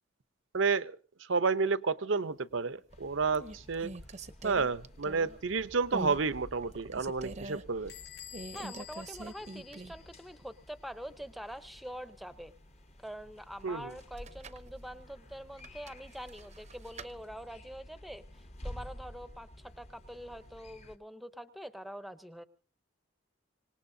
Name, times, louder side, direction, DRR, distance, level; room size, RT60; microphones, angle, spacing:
voice 1, 0.5-1.0 1.3-3.9 4.4-7.9 13.6-13.9, right 4 dB, 75° right, 14 dB, 0.7 m, -30 dB
sound 1, 2.6-2.9 3.3-5.5 5.9-6.2 6.6-7.6 8.3-10.1 10.4-10.5 14.0-14.7 15.6-17.1, right 2 dB, 35° right, 0.7 m, -43 dB
sound 2, 2.9-21.0, left 1 dB, 35° left, 1.0 m, -51 dB
Bell / Door, 7.9-10.4, left 10 dB, 55° left, 1.3 m, -50 dB
voice 2, 8.5-12.5 13.0-22.4, equal, ahead, 11 dB, 0.7 m, -45 dB
26.0 x 19.0 x 2.7 m, 0.39 s
head